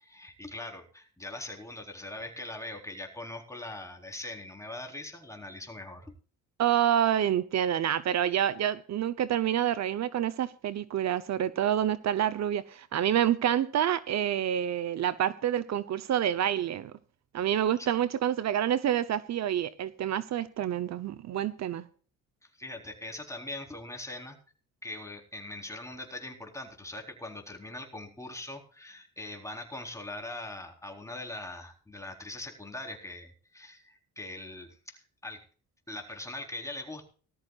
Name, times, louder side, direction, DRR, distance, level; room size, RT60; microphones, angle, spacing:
voice 1, 0.0-6.1 17.8-17.9 22.4-24.4 24.8-35.4 35.9-37.0, left 2 dB, 10° left, 4.0 m, -41 dB
voice 2, 6.6-16.9 17.3-21.8, right 10 dB, 60° right, 0.8 m, -28 dB
19.0 x 13.5 x 2.4 m
cardioid pair, 90°, 30 cm